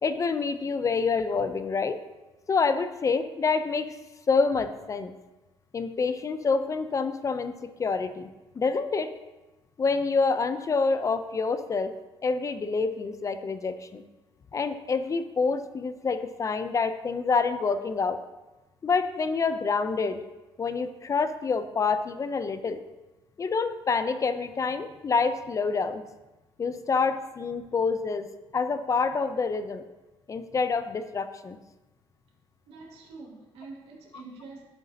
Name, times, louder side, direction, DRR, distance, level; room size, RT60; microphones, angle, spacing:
voice 1, 0.0-2.0 2.5-4.0 4.3-5.1 5.7-8.3 8.6-9.2 9.8-12.0 12.2-14.0 14.5-18.2 18.8-20.2 20.6-22.8 23.4-26.0 26.6-29.8 30.3-31.6, left 4 dB, 35° left, 11 dB, 0.5 m, -27 dB
voice 2, 32.7-34.7, right 3 dB, 80° right, -1 dB, 2.0 m, -45 dB
12.0 x 7.0 x 2.8 m, 1.1 s
cardioid pair, 100°, 10 cm